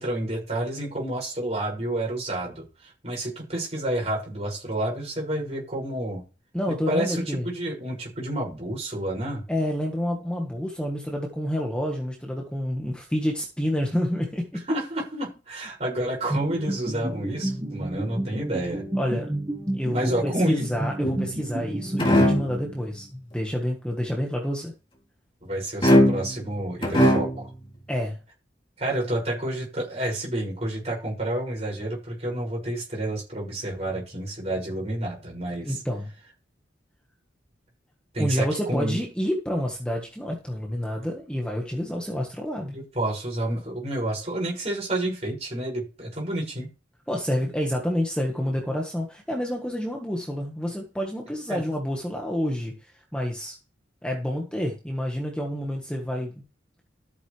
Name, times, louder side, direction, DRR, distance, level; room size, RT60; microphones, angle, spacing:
voice 1, 0.0-6.2 6.9-9.4 14.7-18.8 19.9-20.6 25.4-27.5 28.8-35.8 38.1-39.0 42.7-46.7 51.5-51.6, right 1 dB, 35° right, -2 dB, 6.1 m, -29 dB
voice 2, 6.5-7.4 9.5-14.6 19.0-19.3 19.7-24.7 27.9-28.2 35.6-36.1 38.2-42.8 47.1-53.5 54.0-56.4, equal, 5° left, 0 dB, 1.5 m, -28 dB
sound 1, 16.3-23.0, right 1 dB, 15° right, 1.4 m, -31 dB
sound 2, 21.0-21.6 22.0-22.6 25.8-26.4 26.8-27.5, equal, 25° left, 3.0 m, -20 dB
13.5 x 8.2 x 3.3 m, 0.33 s
head